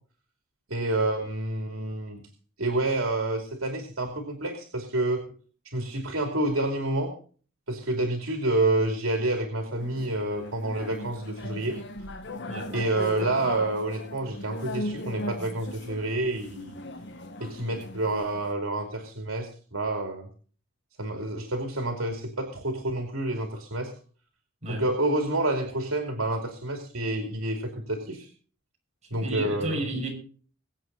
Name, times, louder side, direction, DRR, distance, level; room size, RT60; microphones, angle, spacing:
voice 1, 0.7-2.2 2.6-5.2 5.7-7.1 7.7-11.8 12.7-16.8 17.4-20.3 21.0-23.9 24.7-28.3 29.1-29.8, right 2 dB, 85° right, 2.8 m, -28 dB
sound 1, 9.8-18.5, left 1 dB, 60° left, 1.5 m, -38 dB
voice 2, 29.1-30.1, right 2 dB, 35° right, 6.1 m, -32 dB
23.0 x 8.2 x 4.0 m
head